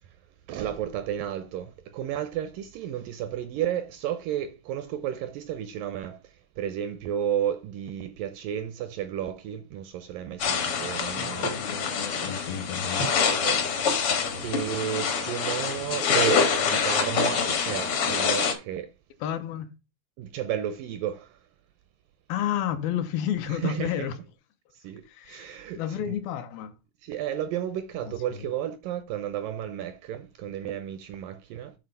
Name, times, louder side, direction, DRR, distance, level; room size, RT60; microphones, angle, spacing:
voice 1, 0.5-6.2 6.6-11.6 12.8-13.8 14.4-18.9 20.2-21.4 23.5-24.1 24.8-25.8 27.0-31.7, right 10 dB, 85° right, 2.0 m, -32 dB
sound 1, 10.4-18.5, left 6 dB, 60° left, 1.5 m, -26 dB
voice 2, 11.1-13.1 19.2-19.7 22.3-24.2 25.1-26.7 28.0-28.5, left 10 dB, 80° left, 2.6 m, -31 dB
8.8 x 3.8 x 5.3 m
omnidirectional pair, 4.4 m